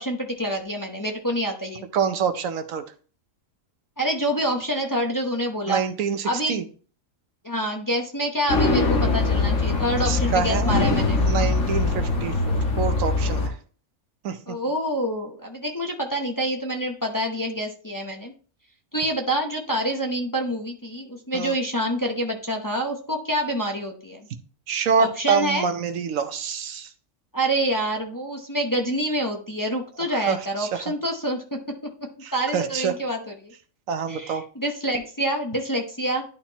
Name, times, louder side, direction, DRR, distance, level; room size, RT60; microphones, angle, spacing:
voice 1, 0.0-1.8 4.0-5.8 6.2-6.7 7.4-11.2 14.5-18.3 18.9-24.2 25.0-25.7 27.3-31.6 32.3-33.5 34.1-36.2, right 1 dB, 20° left, 2 dB, 0.8 m, -27 dB
voice 2, 1.9-2.8 5.7-6.6 10.0-10.7 11.3-13.5 14.2-14.6 21.3-21.5 24.7-26.9 30.3-30.8 32.2-32.9 33.9-34.4, right 6 dB, 80° right, 9 dB, 1.1 m, -26 dB
sound 1, 8.5-13.5, left 3 dB, 70° left, 1.7 m, -22 dB
11.0 x 4.4 x 2.9 m, 0.42 s
omnidirectional pair, 1.4 m